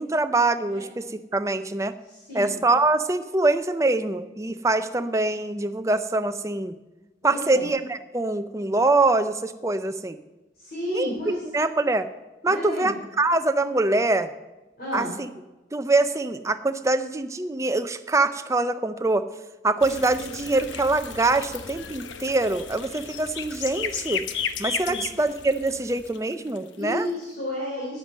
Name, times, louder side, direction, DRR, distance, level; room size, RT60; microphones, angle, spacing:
voice 1, 0.0-1.9 2.3-6.7 7.2-10.2 10.9-11.1 11.5-12.1 12.4-14.3 14.9-15.3 15.7-19.2 19.6-24.2 24.6-27.1, right 2 dB, 15° right, 9 dB, 0.5 m, -24 dB
voice 2, 2.1-2.6 7.2-7.6 10.6-11.4 12.5-12.9 14.8-15.1 24.8-25.0 26.7-28.0, left 1 dB, 50° left, -5 dB, 3.3 m, -31 dB
sound 1, 19.8-26.9, left 7 dB, 80° left, 0.9 m, -34 dB
10.5 x 9.6 x 7.4 m, 1.1 s
head